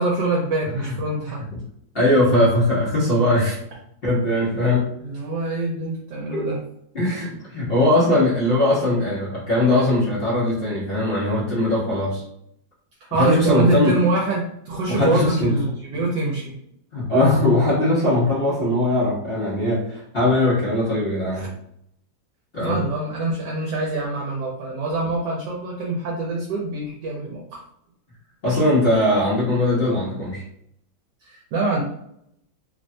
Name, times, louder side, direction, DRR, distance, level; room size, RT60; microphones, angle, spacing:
voice 1, 0.0-1.4 5.0-6.6 13.1-16.5 22.6-27.6 31.2-31.8, right 2 dB, 75° right, -3 dB, 1.1 m, -24 dB
voice 2, 1.9-3.6 4.0-4.9 6.3-6.5 6.9-12.2 13.2-14.0 14.9-15.6 15.9-16.0 16.9-21.5 22.5-22.8 28.4-30.4, left 1 dB, 65° left, -8 dB, 0.5 m, -20 dB
3.2 x 2.1 x 2.6 m, 0.74 s
omnidirectional pair, 2.1 m